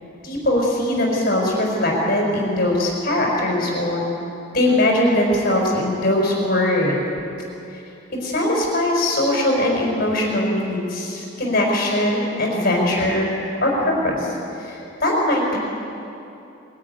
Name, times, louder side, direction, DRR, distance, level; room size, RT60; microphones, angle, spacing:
voice 1, 0.2-4.0 4.5-7.0 8.2-13.3 13.6-14.3 14.6-15.6, left 1 dB, 50° left, -2 dB, 5.4 m, -20 dB
22.0 x 13.5 x 9.7 m, 2.8 s
head